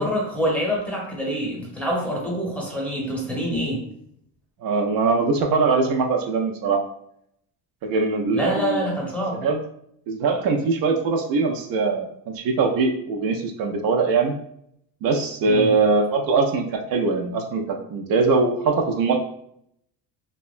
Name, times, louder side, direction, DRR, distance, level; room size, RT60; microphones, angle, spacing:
voice 1, 0.0-3.8 8.3-9.4 15.5-15.7, equal, 5° left, -3 dB, 0.8 m, -26 dB
voice 2, 4.6-6.8 7.8-8.9 9.4-9.6 10.1-12.1 12.3-14.3 15.0-19.2, right 4 dB, 60° right, 3 dB, 0.5 m, -22 dB
2.8 x 2.2 x 2.4 m, 0.71 s
cardioid pair, 125°, 40 cm